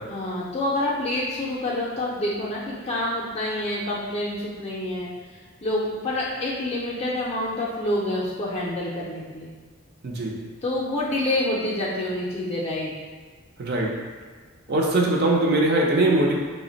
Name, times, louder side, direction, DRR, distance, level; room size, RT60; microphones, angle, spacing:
voice 1, 0.1-5.1 5.6-9.5 10.6-12.9 14.7-14.8, left 1 dB, 25° left, -5 dB, 0.4 m, -27 dB
voice 2, 10.0-10.4 13.6-13.9 14.7-16.3, right 2 dB, 45° right, -1 dB, 0.5 m, -21 dB
3.2 x 2.1 x 3.8 m, 1.5 s
head